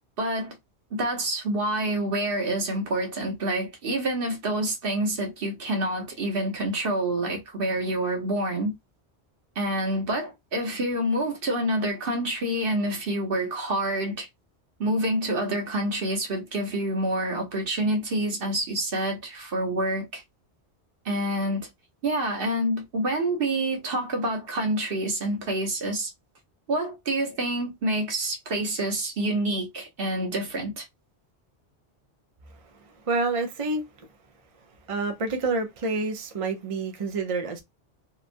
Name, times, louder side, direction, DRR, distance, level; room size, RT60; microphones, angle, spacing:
voice 1, 0.2-0.5 0.9-8.7 9.5-14.3 14.8-20.2 21.0-21.7 22.0-26.1 26.7-30.9, right 1 dB, 55° right, 1.1 m, -27 dB
voice 2, 32.8-34.1 34.9-37.6, right 3 dB, 40° right, 0.5 m, -28 dB
2.9 x 2.2 x 2.5 m
omnidirectional pair, 1.2 m